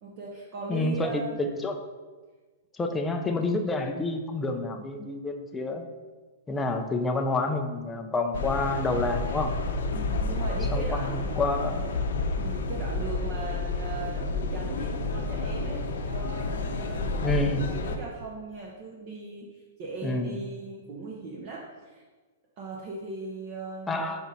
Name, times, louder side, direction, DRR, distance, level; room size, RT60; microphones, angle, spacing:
voice 1, 0.0-1.4 9.9-11.4 12.3-22.0 22.6-24.2, right 3 dB, 35° right, -2 dB, 0.8 m, -39 dB
voice 2, 0.7-1.8 2.7-5.9 6.5-9.5 10.7-12.0 17.2-17.7 20.0-20.4 23.9-24.2, left 2 dB, 10° left, 4 dB, 0.5 m, -28 dB
sound 1, 8.3-18.0, left 3 dB, 75° left, 0.8 m, -30 dB
6.0 x 5.0 x 4.1 m, 1.3 s
hypercardioid pair, 165°, 0 cm